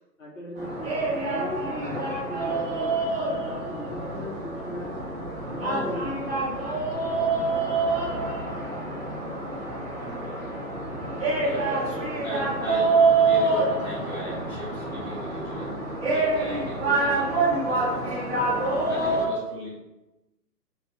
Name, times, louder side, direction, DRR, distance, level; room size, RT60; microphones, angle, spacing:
voice 1, 0.0-1.6 2.1-5.1 5.5-6.5 7.3-7.6 11.3-11.7, left 1 dB, 50° left, -5 dB, 0.8 m, -38 dB
sound 1, 0.6-19.3, right 3 dB, 35° right, 0.8 m, -26 dB
voice 2, 11.4-15.7 16.1-18.2 18.9-19.8, equal, 5° left, -16 dB, 1.1 m, -38 dB
3.4 x 2.3 x 2.9 m, 1.0 s
figure-of-eight pair, 140°, 50 cm